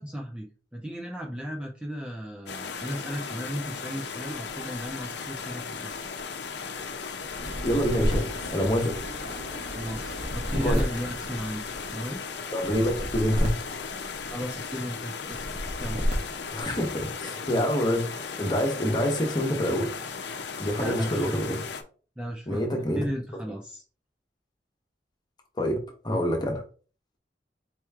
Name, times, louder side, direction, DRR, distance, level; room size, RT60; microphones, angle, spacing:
voice 1, 0.0-6.0 9.7-12.2 14.3-15.5 15.8-16.0 20.8-21.4 22.2-23.8, equal, 5° right, 0.4 m, -35 dB
sound 1, 2.5-21.8, left 5 dB, 75° left, 0.6 m, -37 dB
sound 2, 7.3-9.3 9.9-11.9 12.6-14.5 15.3-16.6, equal, 40° right, 1.2 m, -31 dB
sound 3, 7.4-12.2, right 1 dB, 85° right, 2.0 m, -42 dB
voice 2, 7.6-8.9 10.5-10.8 12.5-13.5 16.5-19.9 20.6-21.6 22.5-23.0 25.6-26.6, equal, 25° left, 1.1 m, -26 dB
4.4 x 3.0 x 3.5 m
head